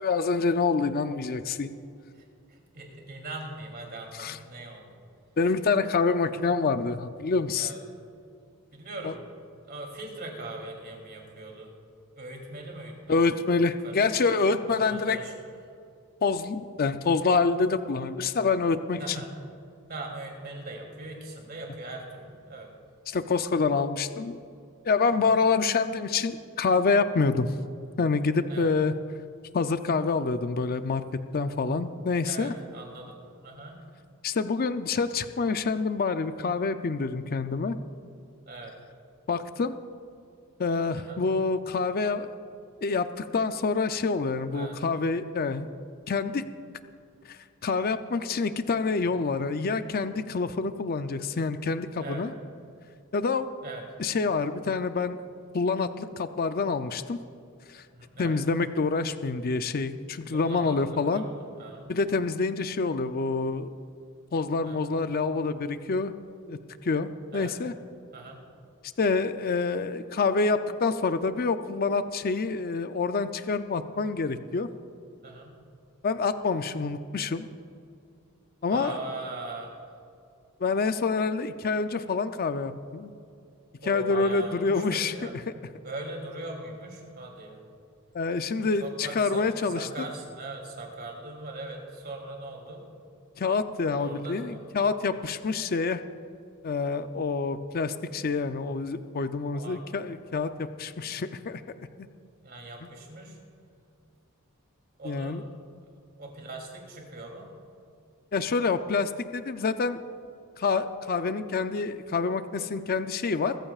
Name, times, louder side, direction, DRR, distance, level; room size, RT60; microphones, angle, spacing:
voice 1, 0.0-1.7 4.1-4.4 5.4-7.7 9.0-9.1 13.1-15.2 16.2-19.2 23.1-24.4 24.8-27.5 28.0-28.9 29.5-31.0 31.3-32.5 34.2-37.7 39.3-39.8 40.6-42.3 42.8-45.7 46.1-46.5 47.3-52.3 53.1-53.5 54.0-55.2 55.5-57.2 57.7-57.9 58.2-61.2 61.9-63.7 64.3-66.1 66.5-67.7 69.0-74.7 76.0-77.5 78.6-79.0 80.6-83.1 83.8-85.4 88.1-90.1 93.4-96.0 96.6-101.6 105.0-105.4 108.3-110.0 110.6-113.6, left 4 dB, 45° left, 10 dB, 0.5 m, -27 dB
voice 2, 2.1-5.0 7.5-7.8 8.7-9.3 9.6-11.7 12.1-13.1 13.8-13.9 14.2-14.3 14.8-15.3 19.0-19.4 19.9-22.7 28.5-28.7 31.5-31.7 32.2-33.2 33.4-33.8 38.5-38.7 41.0-41.2 44.5-44.8 52.0-52.2 53.6-53.8 57.9-58.4 60.3-60.8 61.1-61.9 64.6-64.8 67.3-67.5 68.1-68.4 75.2-75.6 78.7-79.7 83.8-85.4 85.8-87.6 88.8-92.9 93.9-94.7 95.1-95.2 99.5-99.8 102.4-103.4 105.0-105.4 106.2-107.5, right 2 dB, 45° right, 0 dB, 3.0 m, -40 dB
23.5 x 14.0 x 2.4 m, 2.4 s
head